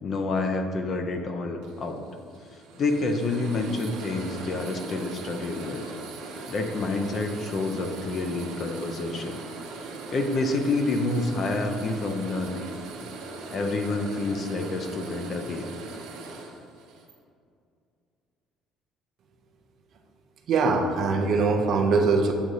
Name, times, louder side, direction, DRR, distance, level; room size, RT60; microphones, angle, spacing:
voice 1, 0.0-2.0 2.8-5.8 6.5-9.4 9.7-12.7 13.5-15.7, left 3 dB, 35° left, 5 dB, 0.5 m, -28 dB
sound 1, 1.6-17.1, right 3 dB, 80° right, 0.8 m, -40 dB
voice 2, 20.5-22.3, right 4 dB, 45° right, 3 dB, 0.6 m, -22 dB
7.9 x 2.7 x 4.8 m, 2.4 s
cardioid pair, 165°, 0 cm